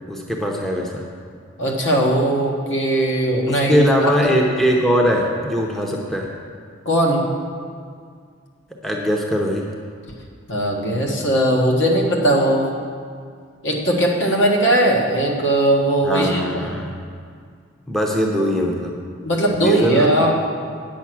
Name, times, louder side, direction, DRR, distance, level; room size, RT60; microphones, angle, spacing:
voice 1, 0.1-1.0 3.5-6.3 8.8-9.7 16.0-17.0 17.9-19.0 19.5-20.2, equal, ahead, -1 dB, 0.7 m, -21 dB
voice 2, 1.6-4.1 6.8-7.2 10.5-12.7 13.6-16.4 19.2-20.3, right 1 dB, 65° left, -1 dB, 1.5 m, -18 dB
9.2 x 7.1 x 6.1 m, 2.2 s
head